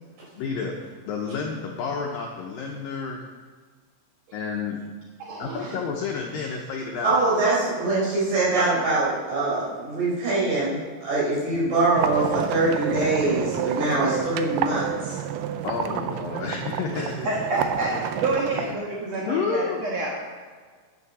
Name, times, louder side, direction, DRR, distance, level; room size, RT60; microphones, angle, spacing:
voice 1, 0.4-0.7 1.1-3.2 4.3-4.9 5.4-7.2 15.6-17.1 19.3-19.8, left 5 dB, 80° left, 0 dB, 2.1 m, -30 dB
voice 2, 5.3-5.8 8.6-8.7 17.2-20.1, right 2 dB, 70° right, -3 dB, 1.6 m, -28 dB
voice 3, 7.0-15.2, right 2 dB, 50° right, -7 dB, 5.9 m, -23 dB
sound 1, 12.0-18.8, right 10 dB, 85° right, 2.2 m, -30 dB
9.9 x 9.4 x 6.1 m, 1.5 s
omnidirectional pair, 5.2 m